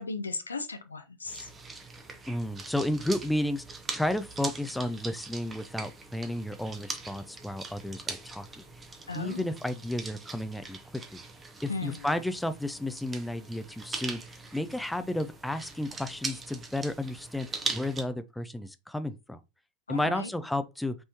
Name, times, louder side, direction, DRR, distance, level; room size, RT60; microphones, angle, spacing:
voice 1, 0.0-1.5 9.1-9.4 11.7-12.0 19.9-20.3, left 3 dB, 80° left, 0.6 m, -36 dB
sound 1, 1.3-18.0, right 4 dB, 20° right, 1.0 m, -41 dB
voice 2, 2.3-8.6 9.1-10.8 11.1-11.2 11.6-19.4 19.9-21.0, left 1 dB, 5° left, 0.5 m, -32 dB
5.2 x 3.5 x 2.9 m
figure-of-eight pair, 80°, 0 cm